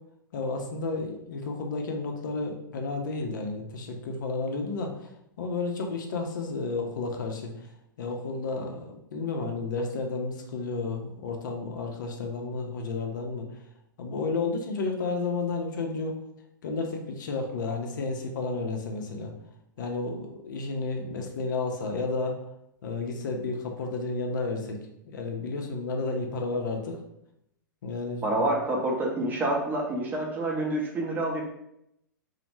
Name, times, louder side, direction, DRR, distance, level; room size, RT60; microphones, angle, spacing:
voice 1, 0.3-5.1 5.4-7.7 8.0-13.5 14.0-16.1 16.6-19.3 19.8-22.4 22.8-27.0 27.8-28.4, left 3 dB, 65° left, 3 dB, 0.5 m, -32 dB
voice 2, 28.2-31.4, right 1 dB, 15° right, -1 dB, 0.5 m, -27 dB
2.0 x 2.0 x 3.1 m, 0.79 s
hypercardioid pair, 110°, 11 cm